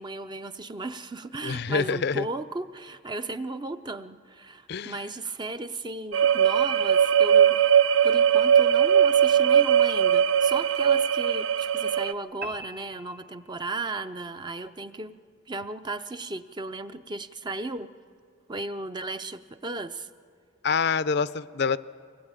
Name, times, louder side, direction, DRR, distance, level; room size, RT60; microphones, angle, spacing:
voice 1, 0.0-7.6 8.0-15.2 15.5-17.9 18.5-20.1, right 2 dB, 25° right, 10 dB, 0.6 m, -35 dB
voice 2, 1.4-2.3 4.7-5.0 20.6-21.8, left 5 dB, 55° left, 15 dB, 0.5 m, -26 dB
sound 1, 6.1-12.1, right 8 dB, 70° right, 0.5 m, -20 dB
sound 2, 12.4-13.9, right 2 dB, 55° right, 1.1 m, -42 dB
24.0 x 19.0 x 9.0 m, 2.1 s
head